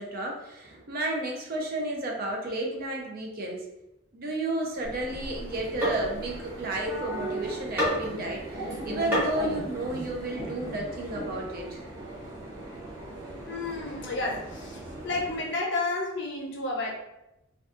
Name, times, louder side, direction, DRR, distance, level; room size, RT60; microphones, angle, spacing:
voice 1, 0.0-3.7 4.1-11.8, right 1 dB, 45° right, 0 dB, 0.4 m, -32 dB
sound 1, 4.7-15.6, right 1 dB, 60° right, 0.8 m, -39 dB
sound 2, 4.8-7.3 7.8-8.3 9.1-9.4, equal, 10° right, 0.8 m, -30 dB
voice 2, 13.5-16.9, left 2 dB, 55° left, -1 dB, 0.5 m, -31 dB
2.5 x 2.3 x 2.4 m, 0.91 s
head